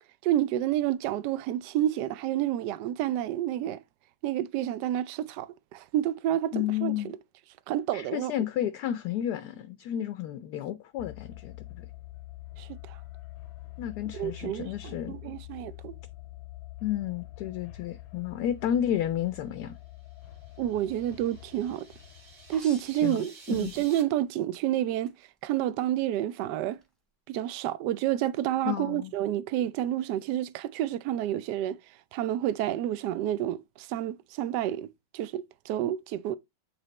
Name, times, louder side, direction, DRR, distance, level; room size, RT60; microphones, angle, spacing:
voice 1, 0.2-3.8 4.2-6.5 6.8-7.2 7.7-8.3 12.6-13.0 14.1-15.9 20.6-21.8 22.5-25.1 25.4-26.8 27.3-31.8 32.1-34.9 35.1-36.4, right 12 dB, 75° right, 1.1 m, -29 dB
voice 2, 6.5-7.1 7.9-11.9 13.8-15.1 16.8-19.8 23.0-23.2 23.5-23.7 28.6-29.1, left 11 dB, 70° left, 1.0 m, -31 dB
sound 1, 11.0-22.6, left 16 dB, 85° left, 1.5 m, -46 dB
sound 2, 19.9-24.0, right 4 dB, 30° right, 1.3 m, -53 dB
sound 3, 22.5-24.1 24.5-25.2 26.7-26.8, left 1 dB, ahead, 0.9 m, -51 dB
7.4 x 3.2 x 4.0 m
omnidirectional pair, 2.1 m